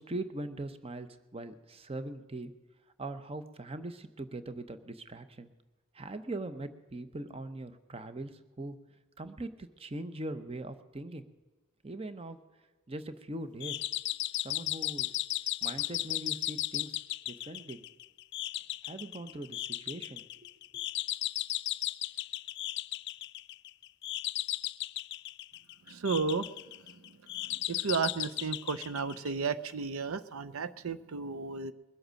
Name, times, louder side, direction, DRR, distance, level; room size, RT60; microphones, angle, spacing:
voice 1, 0.0-2.5 3.0-5.5 5.9-8.8 9.2-11.2 11.8-12.4 12.9-13.8 14.3-15.1 15.6-17.8 18.8-20.2, right 2 dB, 30° right, 11 dB, 0.8 m, -41 dB
sound 1, 13.6-29.7, left 14 dB, 55° left, 0.4 m, -36 dB
voice 2, 25.9-26.5 27.4-31.7, right 5 dB, 90° right, 12 dB, 0.6 m, -33 dB
21.5 x 7.9 x 6.3 m, 1.2 s
head